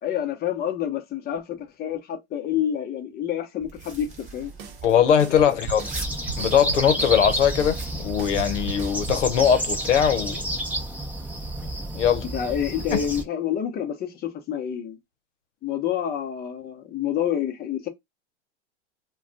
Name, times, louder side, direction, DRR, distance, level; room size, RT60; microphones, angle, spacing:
voice 1, 0.0-4.5 5.3-5.5 12.3-15.0 15.6-17.9, left 9 dB, 25° left, 0.8 m, -28 dB
sound 1, 3.6-9.0, right 3 dB, 20° right, 1.1 m, -41 dB
sound 2, 4.3-9.7, right 6 dB, 50° right, 0.8 m, -38 dB
voice 2, 4.8-5.8 6.4-10.5 11.9-12.2, left 8 dB, 85° left, 0.7 m, -21 dB
sound 3, 5.6-13.2, right 1 dB, 5° right, 0.7 m, -30 dB
2.3 x 2.2 x 3.8 m
hypercardioid pair, 105°, 35 cm